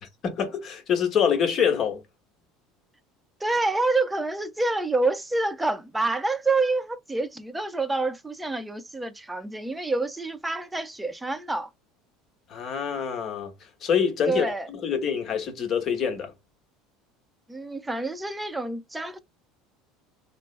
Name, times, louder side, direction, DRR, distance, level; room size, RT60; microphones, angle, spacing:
voice 1, 0.0-2.0 12.5-16.3, left 7 dB, 45° left, 1.1 m, -26 dB
voice 2, 3.4-11.7 14.3-14.7 17.5-19.2, right 3 dB, 10° right, 0.6 m, -27 dB
3.2 x 2.0 x 3.2 m
hypercardioid pair, 90°, 0 cm